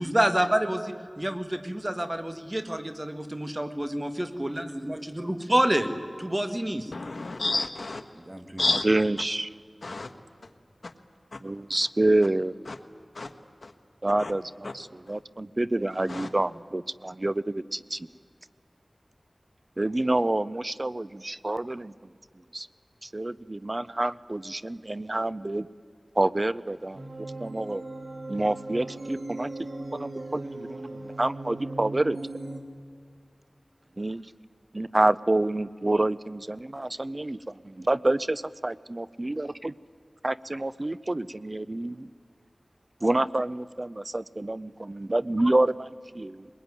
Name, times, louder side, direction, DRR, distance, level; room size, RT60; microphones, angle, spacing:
voice 1, 0.0-5.9 6.2-6.9 8.3-8.6, right 1 dB, 25° right, 8 dB, 2.0 m, -28 dB
voice 2, 6.9-8.0 8.6-8.9 9.8-10.1 10.8-10.9 11.3-11.4 12.7-12.8 13.1-13.3 13.6-13.7 14.2-14.3 14.6-14.7 16.1-16.3, left 3 dB, 80° left, 7 dB, 1.4 m, -30 dB
voice 3, 8.8-9.5 11.4-12.5 14.0-18.1 19.8-21.9 22.5-22.7 23.0-25.7 26.2-27.0 27.4-27.8 28.3-29.5 29.9-32.2 34.0-34.2 34.7-39.7 40.2-42.1 43.0-46.5, right 2 dB, 40° right, 17 dB, 0.6 m, -27 dB
sound 1, 26.9-32.6, right 2 dB, 60° right, 2.5 m, -38 dB
22.0 x 21.0 x 9.8 m, 2.1 s
wide cardioid pair, 45°, 0 cm